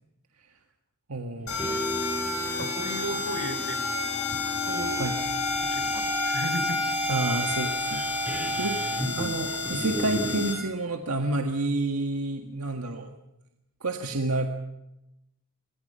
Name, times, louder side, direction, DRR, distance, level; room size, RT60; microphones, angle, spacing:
voice 1, 1.1-1.7 5.0-5.2 7.0-13.2 13.8-14.6, right 2 dB, 80° right, 4 dB, 1.7 m, -30 dB
sound 1, 1.4-10.5, equal, 5° right, 3.4 m, -33 dB
sound 2, 1.5-10.5, left 4 dB, 85° left, 6.6 m, -31 dB
voice 2, 2.4-3.8 4.3-4.4 4.6-5.0 5.6-6.8, right 1 dB, 60° right, 9 dB, 3.9 m, -35 dB
27.0 x 22.5 x 5.6 m, 0.90 s
head